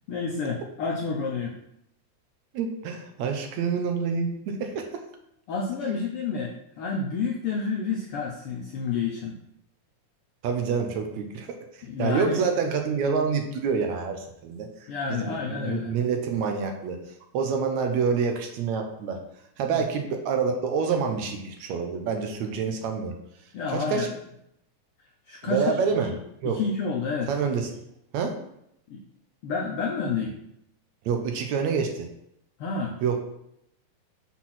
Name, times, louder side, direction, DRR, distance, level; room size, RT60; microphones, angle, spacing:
voice 1, 0.1-1.6 5.5-9.3 11.8-12.4 14.9-16.0 19.7-19.8 23.5-24.1 25.3-25.8 26.4-27.3 28.9-29.0 29.4-30.4 32.6-33.0, left 5 dB, 75° left, -1 dB, 1.3 m, -29 dB
voice 2, 2.5-5.0 5.8-6.0 10.4-17.0 17.3-19.2 19.6-23.1 23.7-24.1 25.4-26.1 26.4-26.6 27.3-27.7 28.1-28.4 31.1-32.1 33.0-33.2, right 5 dB, 75° right, 4 dB, 2.0 m, -27 dB
6.1 x 4.3 x 5.7 m, 0.78 s
omnidirectional pair, 3.5 m